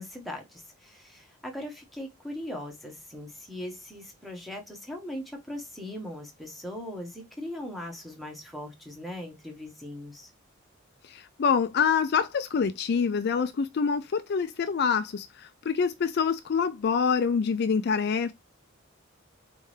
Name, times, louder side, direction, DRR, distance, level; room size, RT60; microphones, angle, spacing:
voice 1, 0.0-10.3, left 1 dB, ahead, 1.2 m, -39 dB
voice 2, 11.1-18.3, left 6 dB, 50° left, 0.4 m, -26 dB
4.2 x 3.5 x 3.2 m
head